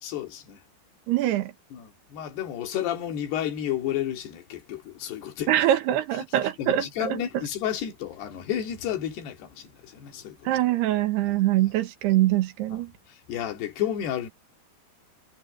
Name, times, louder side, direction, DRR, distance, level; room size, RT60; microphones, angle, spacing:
voice 1, 0.0-0.6 1.7-5.5 6.6-10.5 11.2-11.4 13.1-14.3, left 10 dB, 75° left, 4.3 m, -31 dB
voice 2, 1.1-1.5 5.5-7.2 10.5-12.9, right 13 dB, 80° right, 3.4 m, -23 dB
omnidirectional pair, 4.7 m